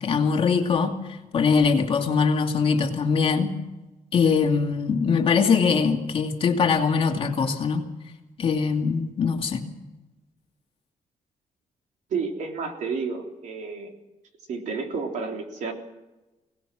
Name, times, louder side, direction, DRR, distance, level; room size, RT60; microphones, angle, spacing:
voice 1, 0.0-1.0 1.3-3.5 4.1-7.8 8.4-9.7, left 5 dB, 40° left, 3 dB, 2.4 m, -22 dB
voice 2, 12.1-13.9 14.5-15.7, right 5 dB, 65° right, 3 dB, 3.4 m, -31 dB
24.0 x 18.5 x 6.3 m, 1.1 s
cardioid pair, 155°, 13 cm